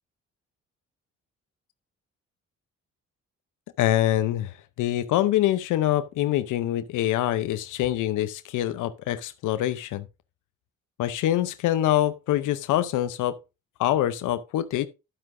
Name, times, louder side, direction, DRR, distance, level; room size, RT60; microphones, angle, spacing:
voice 1, 3.8-4.5 4.8-10.0 11.0-13.4 13.8-14.9, left 13 dB, 85° left, 0.7 m, -25 dB
12.0 x 7.6 x 2.6 m
cardioid pair, 90°, 30 cm